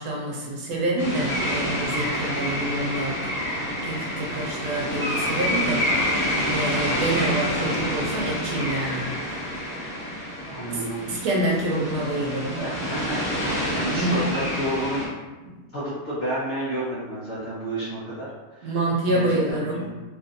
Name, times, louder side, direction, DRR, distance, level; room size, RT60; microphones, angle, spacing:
voice 1, 0.0-3.2 3.8-9.1 10.7-10.8 11.1-12.6 13.9-14.2 15.4-15.6 18.6-19.8, right 1 dB, 70° right, -3 dB, 1.1 m, -27 dB
sound 1, 1.0-15.1, equal, 15° left, 0.7 m, -28 dB
voice 2, 10.5-11.0 12.6-15.1 15.7-18.7 19.1-19.9, right 1 dB, 55° left, -9 dB, 0.7 m, -31 dB
3.2 x 2.5 x 2.5 m, 1.2 s
omnidirectional pair, 1.8 m